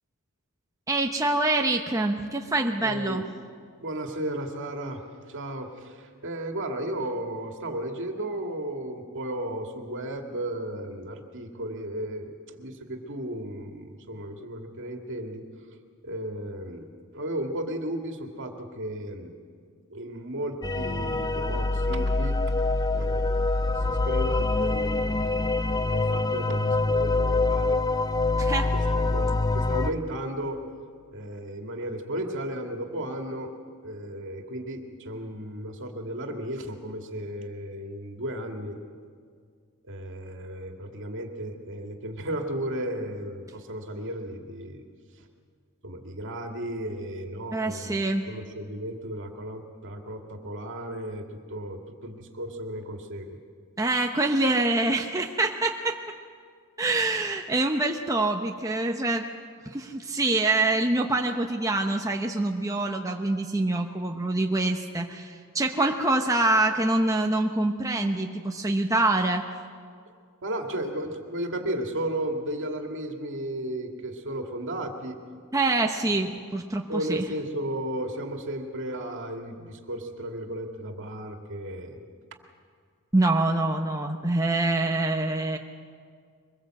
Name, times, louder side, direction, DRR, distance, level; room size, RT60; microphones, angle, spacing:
voice 1, 0.9-3.2 28.4-28.7 47.5-48.2 53.8-56.0 56.8-59.2 59.7-69.4 75.5-77.2 83.1-85.6, right 2 dB, 15° right, 2 dB, 0.9 m, -25 dB
voice 2, 2.8-3.2 3.8-15.4 16.0-16.9 17.1-19.3 19.9-22.4 22.9-23.4 23.7-27.8 28.7-30.6 31.1-33.5 33.8-38.8 39.9-44.8 45.2-45.3 45.8-53.4 70.4-75.2 76.1-76.2 76.9-82.1, right 1 dB, 60° right, 3 dB, 2.3 m, -34 dB
sound 1, 20.6-29.9, left 2 dB, 15° left, 0.6 m, -25 dB
24.0 x 21.5 x 7.7 m, 2.1 s
head